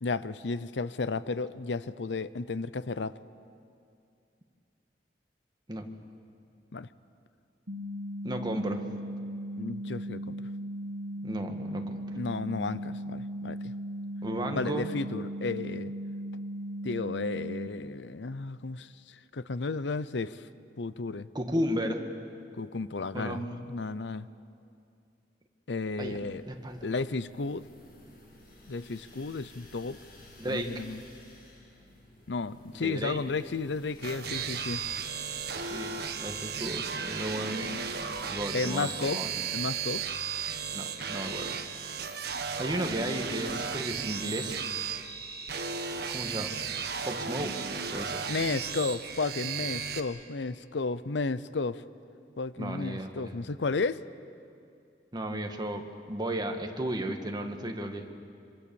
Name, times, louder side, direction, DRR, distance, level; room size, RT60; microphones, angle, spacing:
voice 1, 0.0-3.1 6.7-6.9 9.6-10.4 12.1-13.7 14.5-15.9 16.8-20.5 20.8-21.3 22.5-24.3 25.7-26.4 26.8-27.7 28.7-30.0 30.4-31.0 32.3-34.8 38.5-39.2 39.5-40.1 48.3-51.8 52.4-54.0, left 3 dB, 85° left, 15 dB, 0.7 m, -33 dB
sound 1, 7.7-17.7, equal, 90° right, 1.9 m, -37 dB
voice 2, 8.2-8.9 11.2-12.0 14.2-14.9 21.3-22.0 23.1-23.4 26.0-26.2 26.5-26.9 30.4-30.7 32.7-33.2 35.7-37.7 38.3-39.3 40.7-41.5 42.6-44.6 46.1-46.6 47.0-47.5 47.9-48.2 52.6-53.3 55.1-58.1, right 1 dB, 25° right, 4 dB, 1.8 m, -34 dB
sound 2, 25.8-37.7, left 1 dB, 60° left, 7.0 m, -54 dB
sound 3, 34.0-50.0, right 6 dB, 65° right, 1.6 m, -35 dB
26.5 x 25.5 x 7.1 m, 2.5 s
head